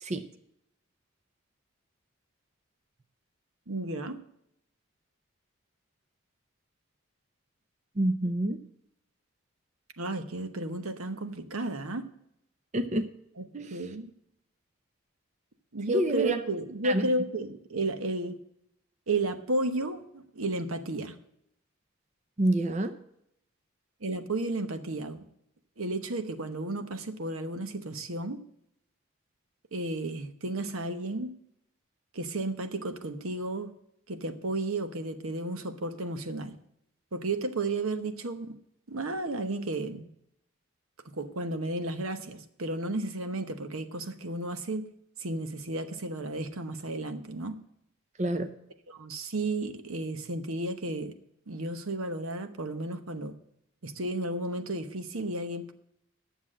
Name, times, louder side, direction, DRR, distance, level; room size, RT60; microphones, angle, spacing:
voice 1, 3.7-4.2 10.0-12.1 13.4-13.5 13.7-14.1 15.7-18.4 19.1-21.2 24.0-25.2 25.8-28.4 29.7-31.3 32.1-33.7 34.1-36.5 37.1-38.6 38.9-40.1 41.2-44.9 45.2-47.6 48.9-51.1 51.5-53.3 53.8-55.7, right 2 dB, 85° right, 9 dB, 1.0 m, -33 dB
voice 2, 8.0-8.6 12.7-13.1 13.5-13.7 15.9-16.4 16.8-17.0 22.4-22.9 48.2-48.5, right 1 dB, 35° right, 9 dB, 0.6 m, -27 dB
10.0 x 7.1 x 7.3 m, 0.76 s
head